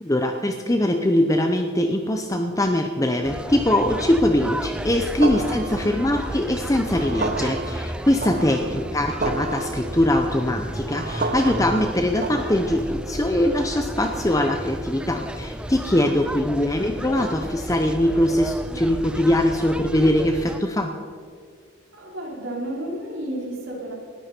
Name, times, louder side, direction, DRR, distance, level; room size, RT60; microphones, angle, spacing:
voice 1, 0.0-20.9, left 1 dB, 15° left, 5 dB, 0.8 m, -22 dB
sound 1, 3.2-20.6, right 1 dB, 5° right, 0.4 m, -33 dB
sound 2, 5.2-13.0, right 2 dB, 45° right, 0.8 m, -31 dB
voice 2, 8.4-8.9 16.2-16.6 21.9-24.0, right 1 dB, 85° right, -2 dB, 4.6 m, -33 dB
19.5 x 14.0 x 4.5 m, 2.1 s
head